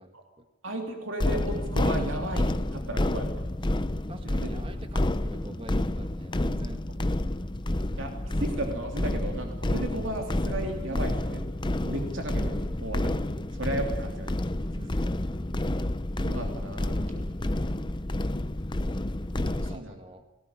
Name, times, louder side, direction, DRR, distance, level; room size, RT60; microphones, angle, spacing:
voice 1, 0.0-0.5 4.1-6.9 10.9-11.2 14.7-15.4 19.4-20.3, right 1 dB, 25° right, 7 dB, 1.6 m, -46 dB
voice 2, 0.6-3.5 4.3-4.5 8.0-11.4 11.8-14.4 16.2-17.2 19.3-19.9, right 1 dB, 60° right, 3 dB, 3.2 m, -35 dB
sound 1, 1.2-19.8, left 1 dB, 20° left, 0.7 m, -29 dB
18.5 x 18.5 x 10.0 m, 1.1 s
head